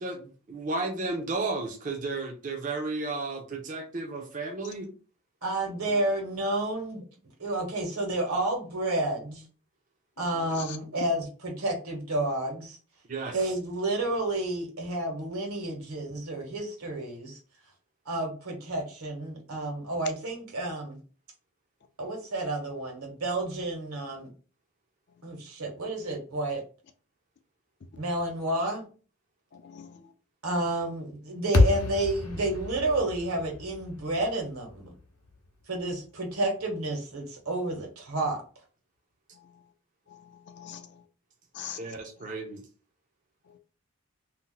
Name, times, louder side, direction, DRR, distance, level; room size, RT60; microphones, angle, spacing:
voice 1, 0.0-4.9 13.1-13.5 41.8-42.6, right 3 dB, 35° right, 0.5 m, -33 dB
voice 2, 5.4-7.0 7.4-9.4 10.2-12.8 13.3-17.4 18.0-21.0 22.0-24.3 25.2-26.6 28.0-28.9 30.4-34.9 35.7-38.4, right 2 dB, 75° right, 1.3 m, -30 dB
voice 3, 10.3-10.8 29.5-30.1 39.3-39.6 40.1-41.0 41.5-41.8 43.5-43.6, left 9 dB, 50° left, 0.4 m, -44 dB
sound 1, 31.5-35.8, left 2 dB, 90° left, 0.7 m, -28 dB
2.7 x 2.1 x 3.8 m
head